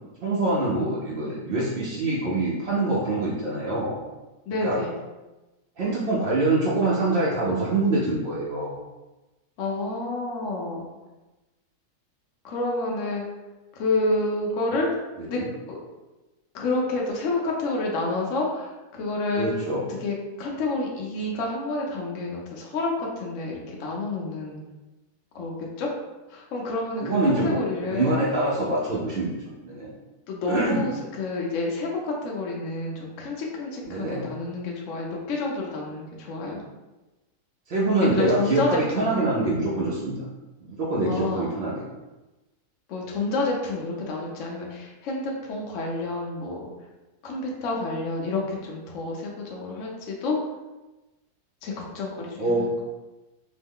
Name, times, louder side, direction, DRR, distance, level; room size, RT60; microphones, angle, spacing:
voice 1, 0.2-4.0 4.6-4.8 5.8-8.8 15.3-15.5 19.4-19.8 27.0-27.6 27.9-29.4 29.6-29.9 30.5-30.8 33.9-34.3 37.7-40.2 40.6-41.8 52.4-52.7, right 2 dB, 65° right, -6 dB, 0.5 m, -25 dB
voice 2, 4.5-5.0 9.6-10.8 12.4-13.2 13.8-14.9 15.3-15.4 15.7-15.8 16.5-19.5 19.9-24.6 25.3-25.9 26.3-28.1 30.3-36.6 38.0-39.1 41.0-41.6 42.9-46.7 47.2-50.4 51.6-52.7, left 2 dB, 65° left, -2 dB, 0.9 m, -29 dB
3.1 x 2.0 x 3.5 m, 1.1 s
omnidirectional pair, 1.6 m